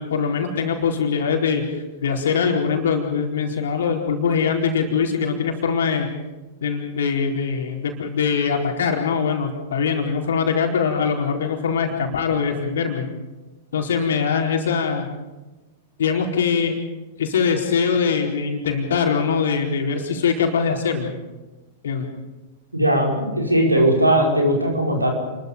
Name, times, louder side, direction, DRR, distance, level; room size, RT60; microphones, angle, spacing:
voice 1, 0.0-1.6 2.0-6.1 6.6-13.1 13.7-15.1 16.0-16.8 17.2-21.1 21.8-22.1, left 6 dB, 60° left, 2 dB, 4.3 m, -22 dB
voice 2, 22.7-25.1, right 1 dB, 85° right, 0 dB, 5.5 m, -18 dB
29.5 x 21.5 x 5.3 m, 1.2 s
figure-of-eight pair, 100°, 0 cm